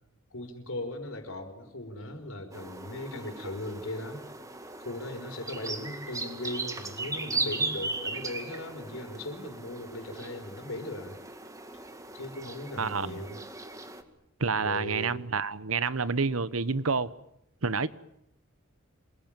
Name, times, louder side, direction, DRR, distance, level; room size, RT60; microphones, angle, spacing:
voice 1, 0.3-4.2 4.8-11.2 12.1-13.4 14.6-15.4, left 1 dB, 75° left, 5.1 m, -38 dB
sound 1, 2.5-14.0, right 3 dB, 15° right, 2.2 m, -38 dB
voice 2, 12.8-13.2 14.4-17.1 17.6-17.9, right 4 dB, 80° right, 1.1 m, -28 dB
27.5 x 22.0 x 9.0 m
head